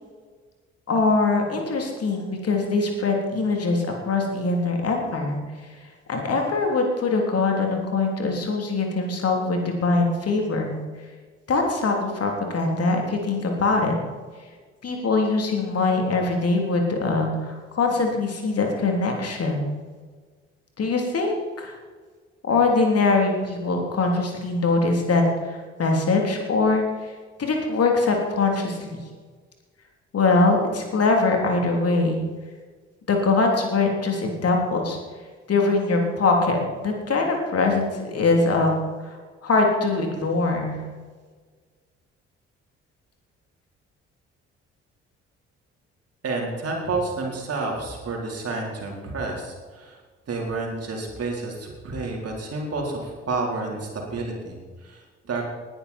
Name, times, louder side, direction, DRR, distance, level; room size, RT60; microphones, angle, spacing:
voice 1, 0.9-5.4 6.1-10.7 11.5-13.9 14.8-19.7 20.8-21.8 22.4-27.1 27.4-29.0 30.1-32.2 33.1-35.0 35.5-38.8 39.0-39.2 39.4-40.8, left 3 dB, 45° left, 2 dB, 3.5 m, -22 dB
voice 2, 46.2-50.0 50.3-55.4, right 3 dB, 45° right, -1 dB, 4.3 m, -30 dB
19.0 x 10.5 x 4.5 m, 1.5 s
figure-of-eight pair, 45°, 34 cm